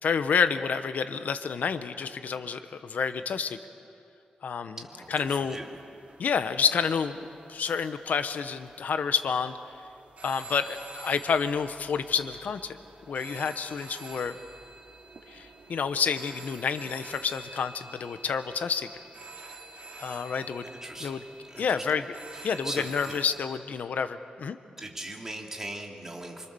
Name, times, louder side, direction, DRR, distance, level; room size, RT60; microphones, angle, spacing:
voice 1, 0.0-3.6 4.4-4.8 5.1-5.6 6.2-9.5 10.2-12.8 13.1-14.4 15.3-18.9 20.0-20.6 21.0-21.2 21.6-22.0 22.4-24.6, left 6 dB, 75° left, 10 dB, 1.2 m, -29 dB
voice 2, 4.8-5.8 20.6-21.2 21.5-21.8 22.3-23.1 24.8-26.5, right 1 dB, 15° right, 0 dB, 3.1 m, -40 dB
sound 1, 5.0-23.5, right 2 dB, 50° right, 3.2 m, -48 dB
27.0 x 25.0 x 7.1 m, 2.5 s
wide cardioid pair, 135°, 3 cm